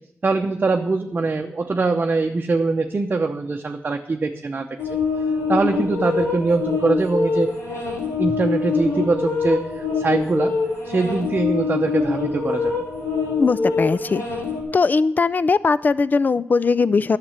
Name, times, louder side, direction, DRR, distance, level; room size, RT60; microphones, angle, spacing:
voice 1, 0.2-4.7 5.5-7.5 8.2-10.6 10.8-12.8, right 3 dB, 40° right, 3 dB, 0.8 m, -22 dB
sound 1, 4.8-14.6, left 4 dB, 90° left, 3.8 m, -24 dB
voice 2, 13.4-14.2 14.7-17.2, left 4 dB, 40° left, 17 dB, 0.4 m, -19 dB
11.0 x 6.7 x 8.3 m, 0.78 s
wide cardioid pair, 100°, 5 cm